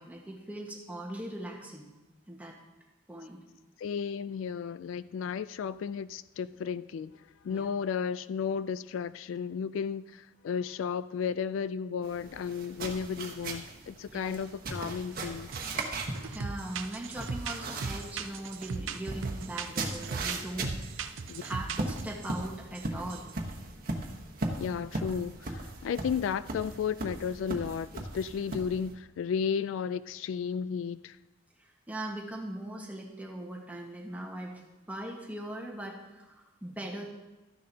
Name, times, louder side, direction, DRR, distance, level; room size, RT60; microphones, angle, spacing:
voice 1, 0.0-1.9 2.3-2.6 3.1-3.4 7.5-7.7 14.1-14.4 16.2-20.7 21.4-23.3 31.6-34.6 34.9-37.1, right 1 dB, 10° right, 1.4 m, -40 dB
voice 2, 3.8-7.1 7.4-15.5 21.3-21.4 24.6-31.2, left 6 dB, 80° left, 0.3 m, -33 dB
sound 1, 12.0-28.9, right 2 dB, 50° right, 1.2 m, -38 dB
sound 2, 15.5-15.9 16.1-22.4 22.8-22.9 23.1-23.3, right 5 dB, 80° right, 0.6 m, -38 dB
13.0 x 10.0 x 2.8 m
head